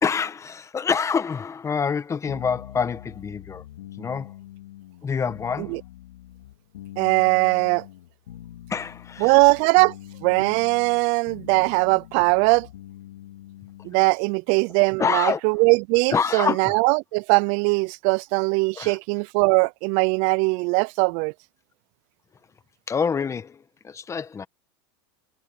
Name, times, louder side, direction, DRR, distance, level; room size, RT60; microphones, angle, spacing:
voice 1, 0.0-3.6 4.0-4.3 5.0-5.8 8.7-9.4 15.0-15.4 16.1-16.8 18.8-19.0 22.9-24.5, left 6 dB, 20° left, 1.2 m, -26 dB
sound 1, 2.3-14.1, left 13 dB, 90° left, 2.7 m, -44 dB
voice 2, 7.0-7.8 9.2-9.9 10.2-12.7 13.8-21.3, right 30 dB, 60° right, 0.5 m, -20 dB
supercardioid pair, 110°, 14 cm